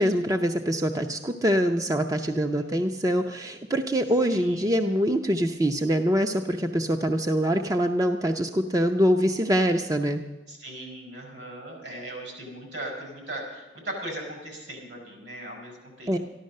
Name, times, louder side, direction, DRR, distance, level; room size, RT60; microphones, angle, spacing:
voice 1, 0.0-10.2 16.1-16.2, equal, 20° right, 5 dB, 0.6 m, -24 dB
voice 2, 2.3-2.8 4.3-4.7 10.5-16.2, right 1 dB, 70° right, 0 dB, 5.6 m, -39 dB
13.5 x 12.0 x 6.5 m, 1.2 s
head